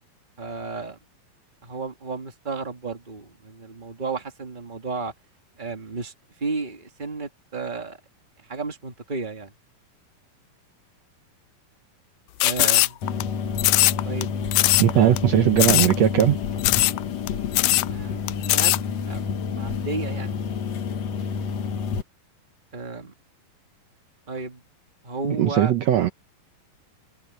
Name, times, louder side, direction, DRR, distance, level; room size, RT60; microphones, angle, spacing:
voice 1, 0.4-1.0 1.6-5.1 5.6-6.1 6.4-8.0 8.5-9.5 12.4-13.0 14.0-14.4 15.0-15.2 17.8-20.3 22.7-23.1 24.3-24.6 25.0-25.7, right 4 dB, 30° right, 0.8 m, -33 dB
sound 1, 12.4-13.2 13.6-14.2 14.5-14.9 15.2-15.3 15.6-16.0 16.2-16.3 16.6-17.0 17.3-17.4 17.5-17.9 18.3-18.8, left 19 dB, 85° left, 1.9 m, -19 dB
sound 2, 13.0-22.0, left 6 dB, 55° left, 2.3 m, -29 dB
voice 2, 14.8-16.4 25.2-26.1, right 11 dB, 75° right, 1.6 m, -19 dB
omnidirectional pair, 4.4 m